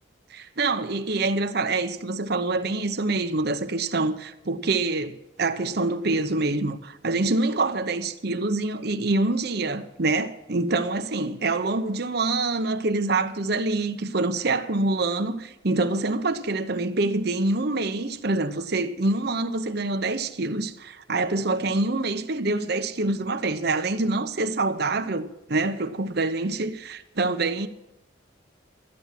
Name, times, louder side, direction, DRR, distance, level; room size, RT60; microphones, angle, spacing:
voice 1, 0.3-27.7, right 2 dB, 55° right, 0.9 m, -26 dB
13.5 x 10.5 x 7.5 m
head